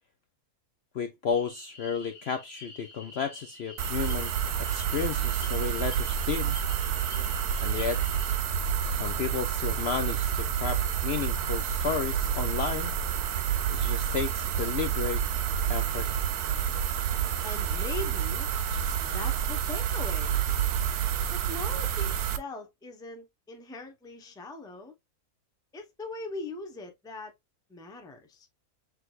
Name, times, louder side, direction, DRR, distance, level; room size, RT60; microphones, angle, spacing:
voice 1, 0.9-4.3 4.6-6.6 7.6-8.0 8.9-12.9 13.7-15.2 15.7-16.1, left 6 dB, 60° left, 0.7 m, -32 dB
sound 1, 1.3-8.4, left 3 dB, 35° left, 1.1 m, -48 dB
sound 2, 3.8-22.4, right 8 dB, 90° right, 1.2 m, -29 dB
voice 2, 17.4-18.5 19.0-20.4 21.3-24.9 25.7-27.3 27.7-28.5, left 3 dB, 5° left, 0.5 m, -41 dB
6.1 x 3.3 x 2.3 m
omnidirectional pair, 1.6 m